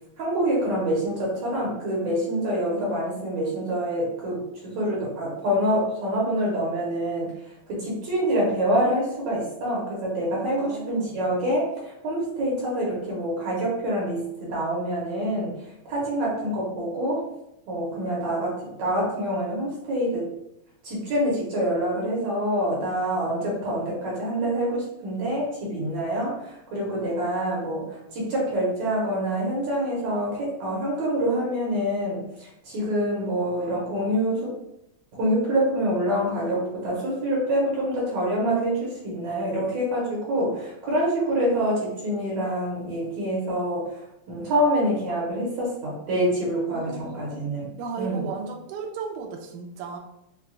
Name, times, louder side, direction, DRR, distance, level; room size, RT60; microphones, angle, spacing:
voice 1, 0.2-7.3 7.7-15.6 15.9-17.2 17.7-20.3 20.8-34.5 35.2-43.8 44.3-47.7 48.0-48.2, equal, 70° right, -4 dB, 2.0 m, -26 dB
voice 2, 10.5-11.2 46.7-47.4 47.8-50.0, right 5 dB, 90° right, 2 dB, 2.1 m, -35 dB
6.1 x 2.2 x 2.3 m, 0.85 s
omnidirectional pair, 3.5 m